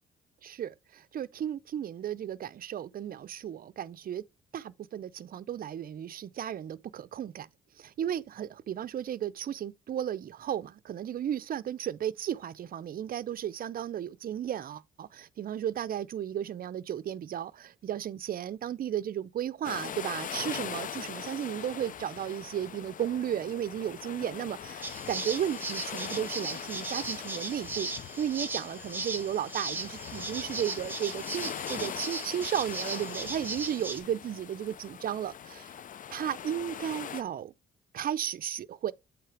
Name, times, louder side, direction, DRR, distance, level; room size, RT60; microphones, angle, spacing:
voice 1, 0.4-4.2 4.5-7.5 7.8-27.9 28.2-35.7 36.1-37.5 37.9-38.9, right 10 dB, 45° right, 0.5 m, -34 dB
sound 1, 19.6-37.2, left 9 dB, 45° left, 0.4 m, -41 dB
sound 2, 24.8-34.0, right 3 dB, 10° right, 1.2 m, -37 dB
8.2 x 3.3 x 4.6 m
cardioid pair, 90°, 20 cm